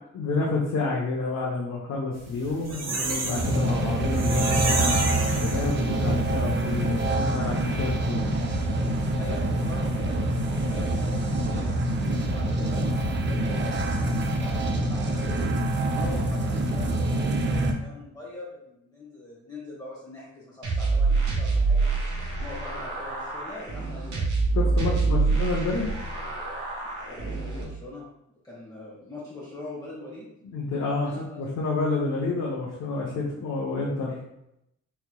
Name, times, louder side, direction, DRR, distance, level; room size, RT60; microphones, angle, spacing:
voice 1, 0.1-8.3 24.5-25.9 30.5-34.2, left 3 dB, 60° left, -4 dB, 0.8 m, -29 dB
sound 1, 2.3-6.1 6.5-6.6 6.9-7.0, right 3 dB, 55° right, 1.0 m, -30 dB
sound 2, 3.3-17.7, right 1 dB, 40° right, 0.6 m, -26 dB
voice 2, 9.2-11.8 12.2-21.9 22.4-24.2 24.9-25.3 27.1-28.1 28.4-30.3 31.0-31.4, left 1 dB, 15° left, -8 dB, 1.1 m, -42 dB
sound 3, 20.6-27.6, right 4 dB, 75° right, 1.2 m, -26 dB
4.4 x 2.8 x 2.3 m, 0.82 s
cardioid pair, 90°, 30 cm